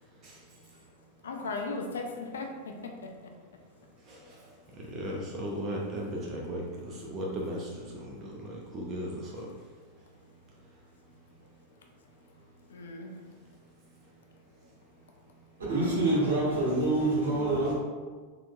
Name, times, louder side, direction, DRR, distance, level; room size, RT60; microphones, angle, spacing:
voice 1, 1.2-3.1 12.7-13.1, left 3 dB, 65° left, 3 dB, 0.4 m, -37 dB
voice 2, 4.9-9.5, equal, 30° right, -2 dB, 0.5 m, -36 dB
voice 3, 15.6-17.7, right 2 dB, 65° right, -6 dB, 1.4 m, -26 dB
4.1 x 2.9 x 2.3 m, 1.5 s
figure-of-eight pair, 90°, 0 cm